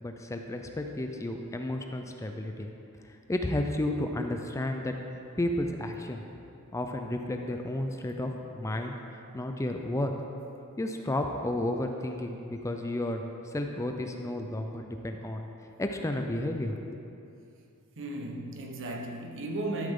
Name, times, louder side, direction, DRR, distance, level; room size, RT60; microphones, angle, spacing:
voice 1, 0.0-2.7 3.3-5.0 5.4-6.2 6.7-8.9 9.3-10.1 10.8-13.2 13.5-15.5 15.8-17.1, left 1 dB, 15° left, 4 dB, 0.4 m, -32 dB
voice 2, 18.0-19.9, right 2 dB, 60° right, 1 dB, 1.0 m, -35 dB
12.5 x 6.7 x 3.7 m, 2.7 s
head